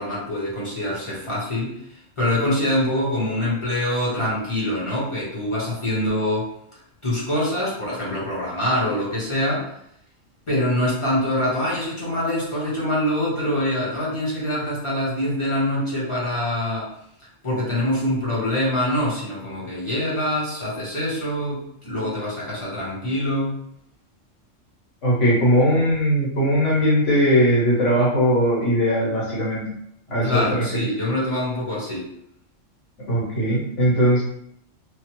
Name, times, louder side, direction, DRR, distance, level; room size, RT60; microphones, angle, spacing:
voice 1, 0.0-1.7 2.2-6.5 7.0-9.7 10.5-16.9 17.4-23.6 30.2-32.1, left 1 dB, 25° left, -7 dB, 0.9 m, -24 dB
voice 2, 25.0-29.7 30.1-30.6 33.1-34.2, equal, 70° left, -7 dB, 1.6 m, -19 dB
3.1 x 2.0 x 3.0 m, 0.72 s
omnidirectional pair, 1.3 m